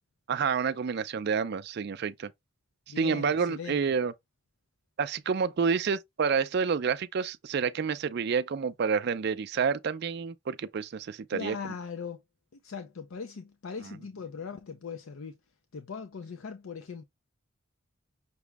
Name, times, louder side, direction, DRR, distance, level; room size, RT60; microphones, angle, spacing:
voice 1, 0.3-2.3 3.0-4.1 5.0-11.6, right 6 dB, 50° right, 0.4 m, -29 dB
voice 2, 2.9-3.8 11.3-12.2 12.5-15.4 15.7-17.0, left 5 dB, 75° left, 0.5 m, -40 dB
5.9 x 2.0 x 3.4 m
head